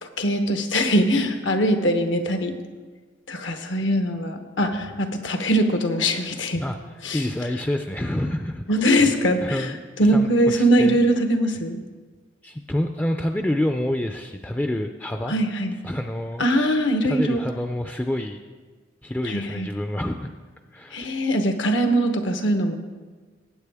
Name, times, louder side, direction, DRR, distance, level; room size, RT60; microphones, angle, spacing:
voice 1, 0.0-2.5 3.3-6.6 7.0-7.2 8.7-11.8 15.3-15.8 16.4-17.4 19.2-19.7 20.9-22.8, equal, 75° left, 6 dB, 1.0 m, -22 dB
voice 2, 7.1-8.6 9.4-9.8 10.1-11.0 12.4-15.3 15.8-16.4 17.0-18.4 19.0-20.3 20.7-21.1, left 1 dB, 10° left, 5 dB, 0.4 m, -27 dB
20.0 x 8.6 x 3.5 m, 1.4 s
head